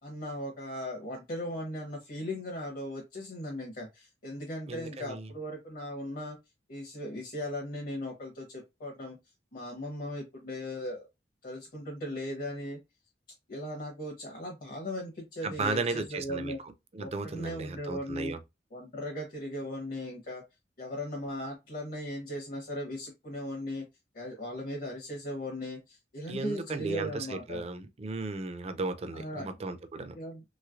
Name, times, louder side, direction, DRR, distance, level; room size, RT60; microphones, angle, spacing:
voice 1, 0.0-6.4 6.7-9.2 9.5-11.0 11.4-12.8 13.5-16.6 17.0-18.4 18.7-20.4 20.8-23.8 24.1-27.6 29.1-29.5 30.1-30.4, equal, 55° left, 1.0 m, -38 dB
voice 2, 4.7-5.3 15.4-16.5 16.9-18.4 26.3-30.2, right 3 dB, 35° right, 0.4 m, -35 dB
3.1 x 3.1 x 2.4 m
head